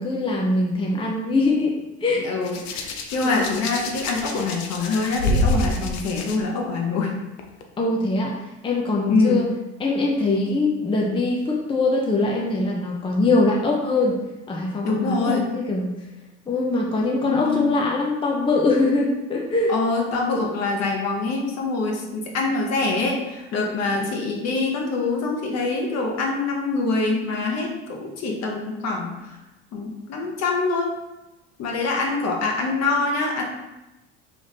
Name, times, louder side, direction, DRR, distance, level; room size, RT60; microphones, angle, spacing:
voice 1, 0.0-1.7 2.0-2.2 7.8-8.3 8.6-9.4 9.8-14.2 14.5-15.9 16.5-19.7 24.0-24.1, left 2 dB, 15° left, -2 dB, 0.7 m, -22 dB
voice 2, 2.2-7.2 9.1-9.5 14.8-15.5 17.2-17.8 19.7-29.3 29.7-30.9 31.6-33.4, left 3 dB, 50° left, 0 dB, 1.1 m, -25 dB
Hands, 2.4-6.4 7.4-7.6, left 2 dB, 75° left, 0.7 m, -27 dB
3.3 x 3.0 x 4.1 m, 0.98 s
hypercardioid pair, 80°, 33 cm